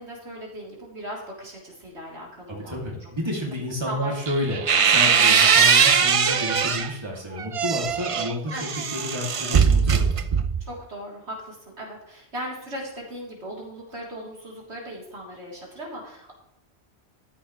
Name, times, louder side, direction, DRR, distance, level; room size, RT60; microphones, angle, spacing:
voice 1, 0.0-3.1 3.8-4.1 8.5-8.7 10.6-16.3, right 1 dB, 80° right, -3 dB, 3.9 m, -38 dB
voice 2, 2.5-8.5 8.9-10.2, left 1 dB, 25° right, -2 dB, 2.8 m, -30 dB
sound 1, 4.3-6.9 7.4-10.7, right 6 dB, 40° right, 0.5 m, -20 dB
14.0 x 10.5 x 3.2 m, 0.82 s
omnidirectional pair, 1.1 m